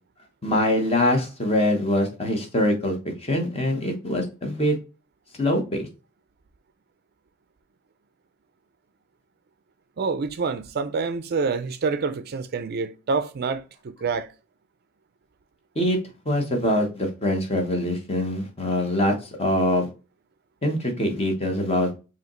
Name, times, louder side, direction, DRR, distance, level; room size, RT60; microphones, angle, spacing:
voice 1, 0.4-3.0 3.2-4.8 5.4-5.8 15.8-16.0 16.3-19.9 20.6-21.9, left 1 dB, 30° left, 1.0 m, -23 dB
voice 2, 10.0-14.3, right 4 dB, 50° right, 0.4 m, -27 dB
4.9 x 2.8 x 3.0 m
head